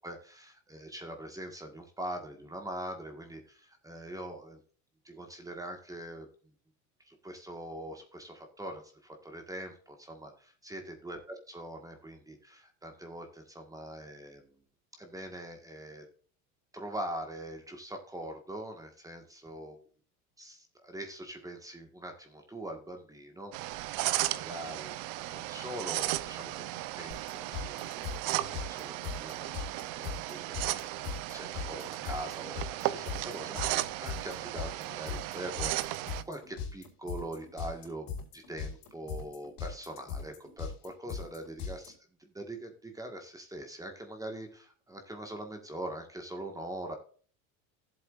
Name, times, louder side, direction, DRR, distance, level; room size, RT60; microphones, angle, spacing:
voice 1, 0.0-4.6 5.0-6.3 7.1-14.5 15.0-16.0 16.7-19.8 20.4-23.7 24.1-25.0 25.3-36.0 36.3-38.1 38.3-41.9 42.2-47.0, right 1 dB, 10° right, 4 dB, 1.7 m, -43 dB
sound 1, 23.5-36.2, right 17 dB, 55° right, 0.7 m, -35 dB
sound 2, 27.1-41.9, left 6 dB, 65° left, 4.3 m, -40 dB
14.5 x 7.9 x 2.5 m, 0.43 s
supercardioid pair, 130°, 41 cm